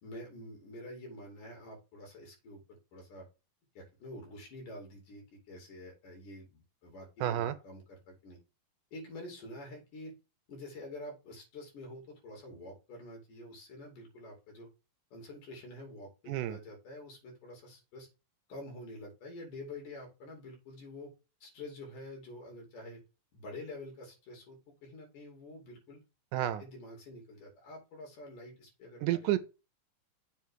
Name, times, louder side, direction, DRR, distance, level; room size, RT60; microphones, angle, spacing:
voice 1, 0.0-3.3 3.8-8.4 8.9-10.1 10.5-14.7 15.1-18.1 18.5-21.1 21.4-23.0 23.3-26.0 26.4-29.4, left 1 dB, 75° left, 4.5 m, -47 dB
voice 2, 7.2-7.5 16.3-16.6 26.3-26.6 29.0-29.4, right 13 dB, 80° right, 2.1 m, -30 dB
7.4 x 3.4 x 6.3 m
omnidirectional pair, 3.7 m